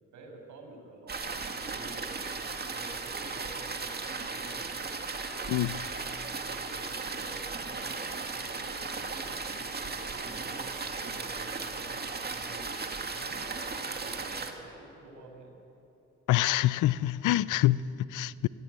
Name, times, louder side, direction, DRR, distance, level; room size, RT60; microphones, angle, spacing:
voice 1, 0.1-4.9 6.5-12.0 12.3-12.7 13.2-15.5, right 2 dB, 75° right, 6.1 m, -49 dB
sound 1, 1.1-14.5, right 4 dB, 35° right, 2.2 m, -36 dB
voice 2, 5.5-5.8 16.3-18.5, left 15 dB, 80° left, 0.6 m, -26 dB
24.5 x 17.0 x 9.5 m
cardioid pair, 90°, 30 cm